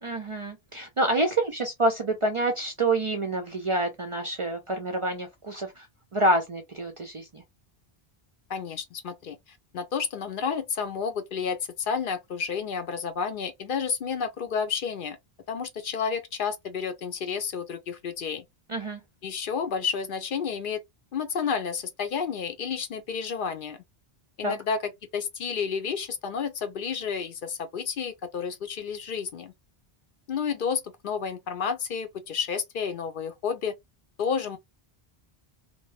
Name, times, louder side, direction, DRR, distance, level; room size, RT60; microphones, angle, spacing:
voice 1, 0.0-5.9 6.1-7.4 18.7-19.0 24.4-24.6, right 2 dB, 45° right, 0.4 m, -27 dB
voice 2, 8.5-9.4 9.7-15.2 15.5-18.4 19.2-20.8 21.1-23.8 24.4-29.5 30.3-33.8 34.2-34.6, left 6 dB, 60° left, 0.7 m, -31 dB
2.6 x 2.2 x 3.1 m
omnidirectional pair, 1.0 m